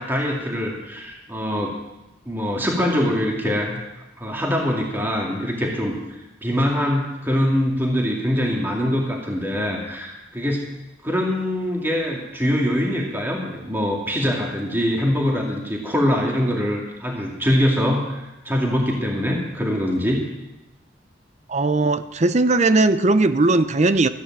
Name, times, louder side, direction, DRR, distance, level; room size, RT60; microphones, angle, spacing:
voice 1, 0.0-1.8 2.3-3.8 4.2-10.7 11.0-20.2, equal, 10° right, -1 dB, 2.2 m, -23 dB
voice 2, 21.5-24.1, right 2 dB, 35° right, 12 dB, 0.6 m, -18 dB
14.0 x 10.0 x 7.3 m, 0.98 s
head